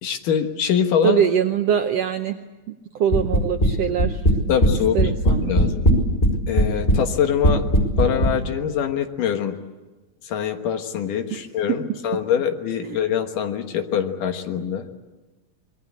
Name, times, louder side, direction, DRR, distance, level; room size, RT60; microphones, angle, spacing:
voice 1, 0.0-1.2 4.5-5.9 6.5-7.7 8.0-9.5 10.2-14.9, left 8 dB, 75° left, 6 dB, 2.9 m, -24 dB
voice 2, 1.0-2.4 2.9-4.2 4.9-5.5 11.3-11.4 12.8-13.0, right 8 dB, 70° right, 6 dB, 1.6 m, -22 dB
sound 1, 3.1-3.7 4.0-4.7 5.0-6.3 6.6-7.0 7.4-8.3, equal, 20° left, 5.1 m, -17 dB
26.0 x 21.5 x 8.5 m, 1.2 s
omnidirectional pair, 3.9 m